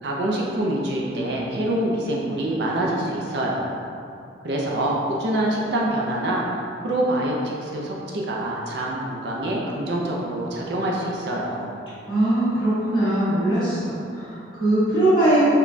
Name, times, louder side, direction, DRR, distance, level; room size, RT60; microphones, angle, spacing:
voice 1, 0.0-3.8 4.4-6.4 6.8-11.7, right 1 dB, 60° right, -3 dB, 0.4 m, -25 dB
voice 2, 12.1-15.4, right 1 dB, 25° left, -13 dB, 1.4 m, -21 dB
4.9 x 2.2 x 2.6 m, 2.6 s
head